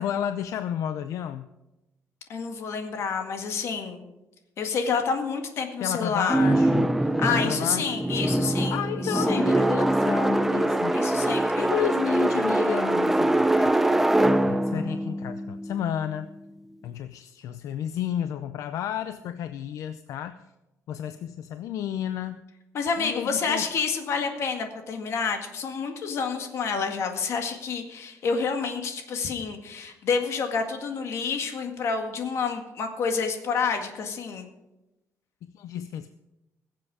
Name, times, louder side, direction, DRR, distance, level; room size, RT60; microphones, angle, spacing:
voice 1, 0.0-1.5 5.8-7.0 7.3-8.0 8.7-11.0 11.6-13.8 14.4-16.3 16.8-20.4 20.9-22.5 23.0-23.7 35.4-36.1, left 10 dB, 80° left, 11 dB, 0.5 m, -32 dB
voice 2, 2.3-4.0 4.6-6.4 7.2-9.4 10.9-11.7 22.7-34.5, left 5 dB, 60° left, 5 dB, 1.9 m, -29 dB
sound 1, 6.3-16.3, right 1 dB, 5° right, 0.5 m, -23 dB
21.0 x 7.6 x 4.8 m, 0.96 s
cardioid pair, 155°, 5 cm